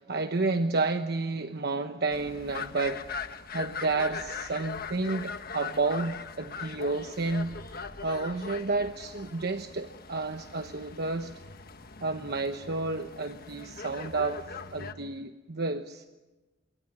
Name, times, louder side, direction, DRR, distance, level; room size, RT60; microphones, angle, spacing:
voice 1, 0.0-3.0 3.5-7.6 8.0-11.3 12.0-16.0, right 3 dB, 60° right, 7 dB, 1.1 m, -31 dB
sound 1, 2.1-14.9, left 5 dB, 55° left, 1.4 m, -41 dB
27.5 x 23.0 x 9.3 m, 1.1 s
head